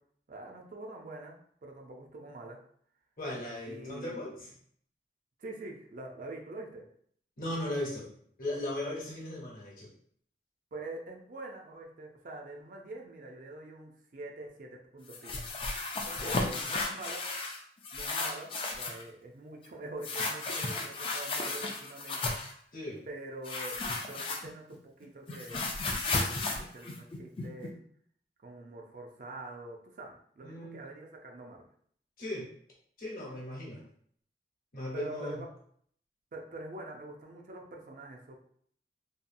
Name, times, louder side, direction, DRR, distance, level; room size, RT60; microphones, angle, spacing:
voice 1, 0.3-2.6 3.7-4.3 5.4-6.8 10.7-15.4 16.2-17.2 17.9-22.3 23.1-23.8 24.1-25.6 26.1-27.8 28.4-31.6 34.9-35.5 36.3-38.4, right 2 dB, 50° right, 1 dB, 0.4 m, -45 dB
voice 2, 3.2-4.5 7.4-8.1 8.4-9.9 16.1-16.5 22.7-23.0 30.4-30.8 32.2-32.5 33.0-33.8 34.7-35.4, left 1 dB, 50° left, -4 dB, 0.9 m, -37 dB
sound 1, 15.1-17.6 17.8-19.0 20.0-22.5 23.4-24.8 25.0-27.7, left 3 dB, 30° left, 0.3 m, -34 dB
2.7 x 2.3 x 2.5 m, 0.62 s
head